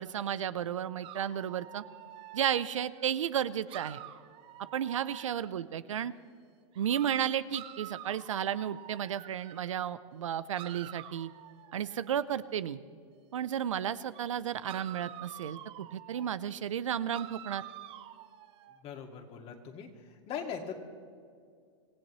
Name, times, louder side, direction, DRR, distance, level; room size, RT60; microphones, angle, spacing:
voice 1, 0.0-1.8 2.3-4.0 4.7-6.1 6.8-11.3 11.7-12.8 13.3-17.6, right 9 dB, 85° right, 15 dB, 0.7 m, -33 dB
sound 1, 1.0-3.1 3.7-5.7 6.7-9.7 10.5-12.5 14.1-14.3 14.6-16.3 17.1-18.8, right 13 dB, 35° right, 0.8 m, -48 dB
voice 2, 18.8-19.9 20.3-20.8, left 7 dB, 35° left, 4 dB, 2.2 m, -40 dB
26.0 x 16.5 x 3.2 m, 2.2 s
hypercardioid pair, 115°, 16 cm